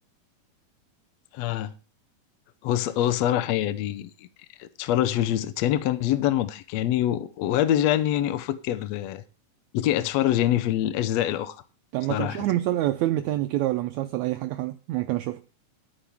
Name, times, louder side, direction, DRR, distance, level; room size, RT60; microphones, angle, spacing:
voice 1, 1.3-1.7 2.6-4.1 4.6-9.2 9.7-11.6 12.1-12.4, left 12 dB, 75° left, 1.6 m, -25 dB
voice 2, 11.9-15.4, right 15 dB, 80° right, 1.7 m, -27 dB
12.0 x 8.9 x 3.5 m
omnidirectional pair, 3.7 m